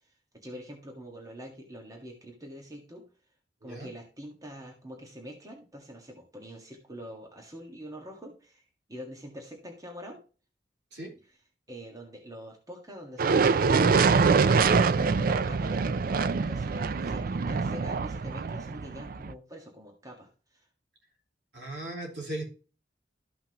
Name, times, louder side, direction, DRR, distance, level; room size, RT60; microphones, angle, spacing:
voice 1, 0.0-3.1 3.6-8.6 8.9-10.2 11.2-11.4 11.7-14.0 14.5-20.7, equal, 20° right, 1 dB, 1.7 m, -45 dB
sound 1, 13.2-19.3, right 5 dB, 55° right, 0.4 m, -24 dB
voice 2, 21.5-22.4, right 1 dB, 75° right, 0 dB, 3.4 m, -37 dB
13.5 x 5.8 x 2.9 m, 0.36 s
head